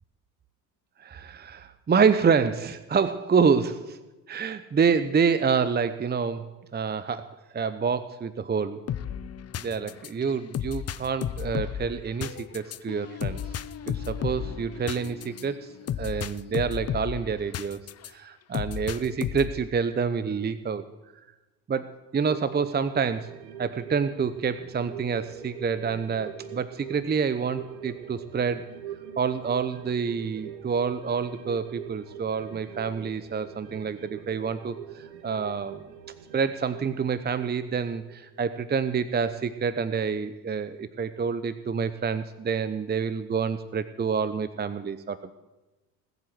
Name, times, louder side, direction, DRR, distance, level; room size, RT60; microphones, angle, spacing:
voice 1, 1.0-4.0 4.3-7.3 7.5-8.8 9.6-13.5 13.9-15.7 16.0-17.8 18.1-20.9 21.7-23.3 23.6-28.7 29.2-35.8 36.3-45.3, right 6 dB, 20° right, 13 dB, 0.9 m, -27 dB
sound 1, 8.9-18.1 18.5-19.7, left 9 dB, 35° left, 0.8 m, -33 dB
sound 2, 22.3-39.1 39.4-39.5, right 9 dB, 70° right, 1.8 m, -43 dB
19.5 x 8.1 x 7.8 m, 1.1 s
hypercardioid pair, 60°, 45 cm